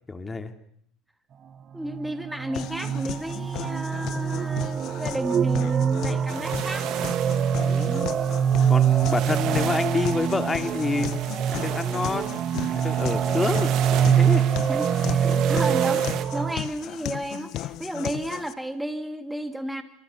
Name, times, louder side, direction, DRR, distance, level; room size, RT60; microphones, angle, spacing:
voice 1, 0.1-0.5 7.6-8.1 8.7-11.1 11.5-12.4 12.7-14.5 15.2-15.6, left 3 dB, 20° left, 8 dB, 2.8 m, -28 dB
voice 2, 1.7-6.9 14.7-19.8, right 1 dB, 5° right, 8 dB, 2.8 m, -32 dB
sound 1, 1.8-16.6, right 8 dB, 40° right, 1.6 m, -24 dB
sound 2, 2.5-18.5, left 12 dB, 60° left, 1.6 m, -36 dB
sound 3, 6.3-16.2, right 12 dB, 60° right, 2.4 m, -37 dB
28.5 x 27.0 x 7.1 m, 0.66 s
hypercardioid pair, 80°, 0 cm